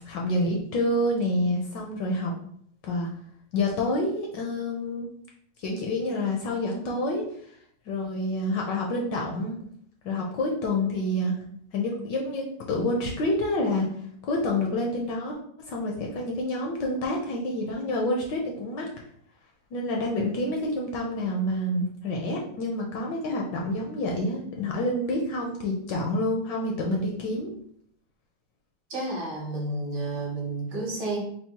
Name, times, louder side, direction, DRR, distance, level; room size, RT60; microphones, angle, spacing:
voice 1, 0.1-2.3 2.8-3.1 3.5-5.1 5.6-7.2 7.9-9.6 10.0-11.4 11.7-13.9 14.2-15.4 15.7-18.9 19.7-27.5, left 1 dB, 70° left, 0 dB, 1.2 m, -28 dB
voice 2, 28.9-31.2, right 2 dB, 60° right, -2 dB, 1.4 m, -31 dB
4.1 x 2.0 x 4.4 m, 0.65 s
omnidirectional pair, 2.3 m